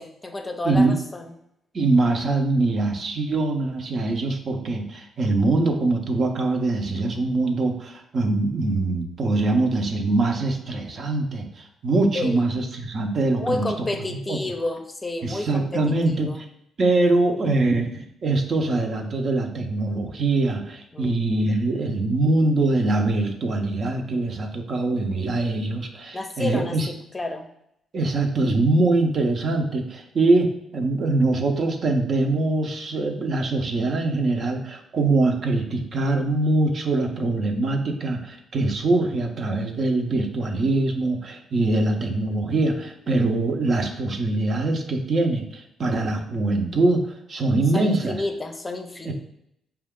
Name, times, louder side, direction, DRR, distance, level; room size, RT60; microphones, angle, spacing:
voice 1, 0.0-1.3 12.1-12.4 13.4-16.4 20.9-21.2 26.1-27.5 47.7-49.1, left 2 dB, 25° left, 5 dB, 0.6 m, -30 dB
voice 2, 0.6-1.0 1.7-14.4 15.2-16.4 16.8-26.9 27.9-48.2 49.0-49.1, right 2 dB, 55° right, 4 dB, 0.6 m, -23 dB
4.4 x 2.3 x 3.6 m, 0.78 s
supercardioid pair, 60°, 0 cm